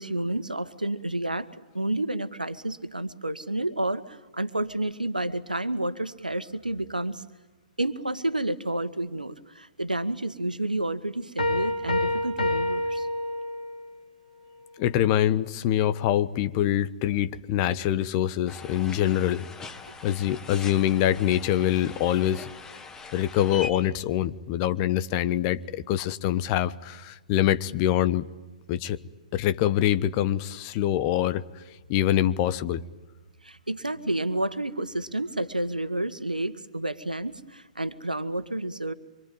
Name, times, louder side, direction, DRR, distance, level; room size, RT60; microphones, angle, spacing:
voice 1, 0.0-1.5 1.7-7.2 7.8-13.1 33.4-38.9, right 1 dB, 85° right, 1.5 m, -30 dB
sound 1, 11.4-13.9, left 1 dB, 75° left, 4.0 m, -27 dB
voice 2, 14.8-19.5 20.0-22.5 23.1-28.3 28.7-29.0 29.3-31.4 31.9-32.8, left 12 dB, 30° left, 1.1 m, -24 dB
sound 2, 18.5-23.7, left 4 dB, 15° left, 1.7 m, -42 dB
25.5 x 24.5 x 9.1 m
figure-of-eight pair, 120°, 4 cm